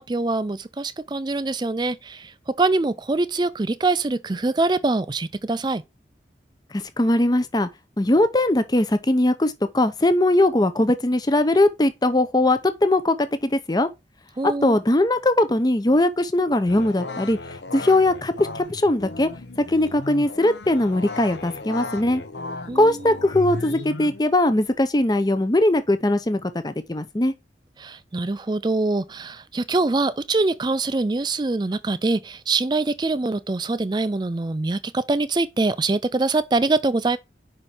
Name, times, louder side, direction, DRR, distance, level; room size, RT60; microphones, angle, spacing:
voice 1, 0.0-5.8 14.4-14.8 22.7-23.1 27.8-37.2, right 3 dB, 25° right, 0.4 m, -24 dB
voice 2, 6.7-7.7 8.0-13.9 14.4-17.4 17.7-19.3 19.6-22.2 22.7-27.3, left 1 dB, 20° left, 0.6 m, -20 dB
sound 1, 16.7-24.2, left 2 dB, 75° left, 0.9 m, -35 dB
5.5 x 4.4 x 4.8 m
head